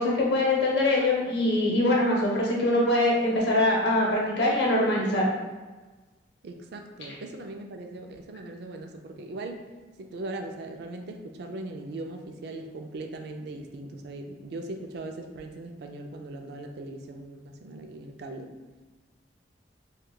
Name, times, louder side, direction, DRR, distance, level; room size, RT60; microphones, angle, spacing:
voice 1, 0.0-5.2, left 1 dB, 65° left, -3 dB, 0.8 m, -23 dB
voice 2, 6.4-9.7 10.0-18.5, right 2 dB, 60° right, 4 dB, 0.3 m, -39 dB
3.6 x 2.2 x 2.3 m, 1.3 s
head